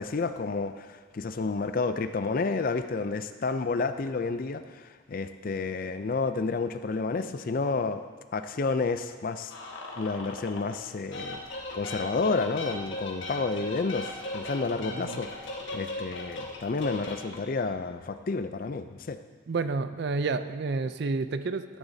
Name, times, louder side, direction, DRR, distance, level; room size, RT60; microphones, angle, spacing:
voice 1, 0.0-8.0 8.3-9.5 10.0-11.4 11.7-15.3 15.7-19.2, left 4 dB, 45° left, 10 dB, 0.4 m, -30 dB
sound 1, 9.5-10.8 11.1-17.5, left 1 dB, 65° left, 1.4 m, -38 dB
voice 2, 14.9-15.2 19.5-21.8, right 3 dB, 55° right, 11 dB, 0.4 m, -30 dB
13.0 x 10.0 x 2.7 m, 1.5 s
head